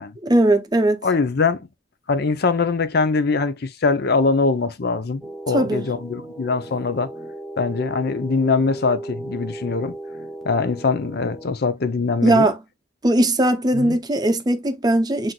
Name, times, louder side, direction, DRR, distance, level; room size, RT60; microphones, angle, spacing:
voice 1, 0.2-1.0 5.5-5.8 12.2-12.6 13.0-15.3, right 1 dB, 20° right, 0.6 m, -19 dB
voice 2, 1.0-1.6 2.1-7.1 7.6-10.0 10.4-12.5 13.7-14.0, left 4 dB, 55° left, 0.6 m, -22 dB
sound 1, 5.2-11.5, right 1 dB, ahead, 1.0 m, -36 dB
7.6 x 2.6 x 2.3 m
head